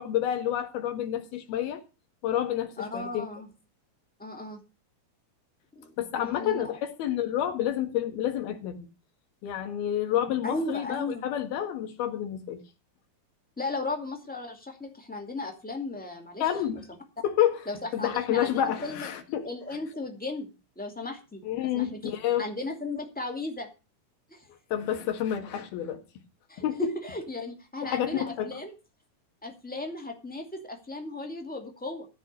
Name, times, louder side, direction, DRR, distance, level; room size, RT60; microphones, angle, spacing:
voice 1, 0.0-1.8 2.2-3.3 6.0-8.9 9.4-12.6 16.4-16.8 17.2-17.6 17.9-19.5 21.5-22.5 24.7-26.0 26.6-26.9 27.8-28.5, left 11 dB, 75° left, 3.6 m, -29 dB
voice 2, 2.8-3.5 4.2-4.6 5.7-6.7 10.4-11.3 13.6-16.5 17.6-19.1 19.4-22.1 22.4-23.7 24.3-24.5 26.5-28.7 29.4-32.1, left 2 dB, 5° left, 1.3 m, -36 dB
14.5 x 5.3 x 8.2 m
omnidirectional pair, 4.5 m